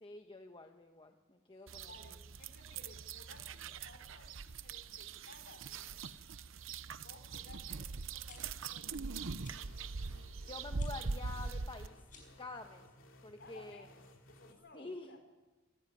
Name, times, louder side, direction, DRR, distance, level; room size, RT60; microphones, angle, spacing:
voice 1, 0.0-1.9 10.1-12.0 12.4-12.8 13.2-13.9 14.7-15.2, left 3 dB, 25° left, 4 dB, 1.2 m, -48 dB
voice 2, 1.5-6.2 7.0-9.4 13.4-14.0 14.3-15.2, left 2 dB, 55° left, 5 dB, 4.6 m, -59 dB
sound 1, 1.7-11.9, right 4 dB, 65° right, 0.8 m, -42 dB
sound 2, 8.3-8.4 9.4-9.6 10.7-10.9 12.0-12.4, left 5 dB, 40° left, 6.2 m, -56 dB
sound 3, 9.4-14.5, left 1 dB, 70° left, 2.7 m, -61 dB
26.0 x 15.0 x 9.7 m, 1.2 s
head